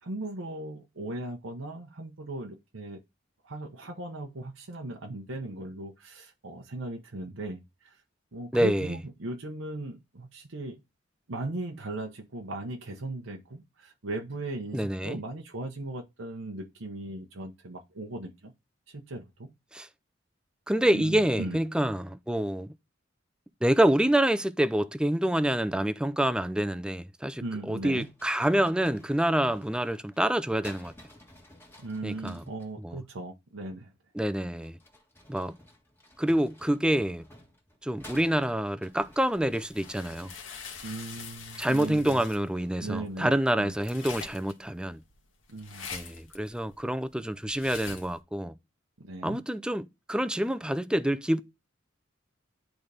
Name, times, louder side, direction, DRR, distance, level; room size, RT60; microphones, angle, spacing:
voice 1, 0.0-3.0 3.4-8.0 8.3-10.8 11.3-18.5 18.9-19.5 20.9-21.6 27.4-28.1 31.8-33.9 40.8-42.2 42.8-43.7 45.5-46.0 49.0-49.4, right 2 dB, 90° right, 1.0 m, -38 dB
voice 2, 8.5-8.9 14.7-15.2 19.7-19.9 20.7-22.7 23.6-30.9 32.0-32.4 32.8-33.0 34.2-34.8 35.3-35.6 36.2-37.3 37.8-40.3 41.6-45.0 45.9-48.5 49.2-51.4, right 1 dB, 5° right, 0.4 m, -27 dB
sound 1, 27.9-32.7 34.5-43.1, left 1 dB, 10° left, 1.5 m, -54 dB
sound 2, 39.0-48.2, left 5 dB, 85° left, 1.6 m, -45 dB
10.5 x 4.0 x 3.3 m
head